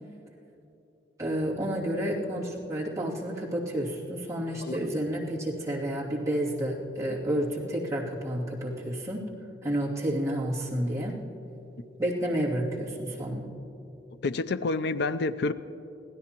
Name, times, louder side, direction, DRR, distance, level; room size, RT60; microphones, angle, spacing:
voice 1, 1.2-9.3 9.6-11.2 12.0-13.5, right 1 dB, 20° right, -7 dB, 2.6 m, -30 dB
voice 2, 14.2-15.5, left 3 dB, 65° left, 12 dB, 0.5 m, -28 dB
26.0 x 16.5 x 3.0 m, 2.8 s
head